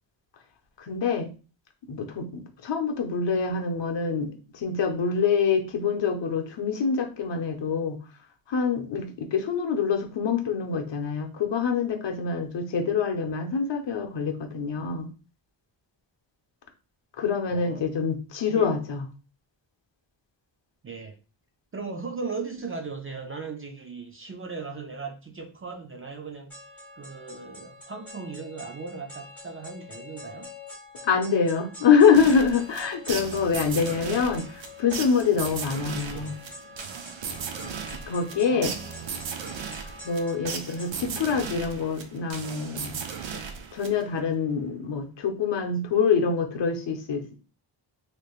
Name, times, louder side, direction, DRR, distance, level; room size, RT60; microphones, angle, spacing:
voice 1, 0.8-1.3 1.9-8.0 8.5-15.1 17.2-19.0 31.0-36.4 37.6-37.7 38.1-38.7 40.0-43.0 43.7-47.4, left 6 dB, 70° left, 0.7 m, -25 dB
voice 2, 17.5-17.9 18.5-18.7 20.8-21.2 21.7-26.5 27.0-30.5 36.1-36.4 36.9-37.0 37.4-37.5 38.4-38.9, right 4 dB, 30° right, 0.4 m, -38 dB
sound 1, 26.5-40.9, left 2 dB, 5° left, 1.4 m, -46 dB
sound 2, 32.1-44.3, right 6 dB, 90° right, 0.6 m, -36 dB
3.2 x 3.1 x 2.4 m
wide cardioid pair, 160°, 45 cm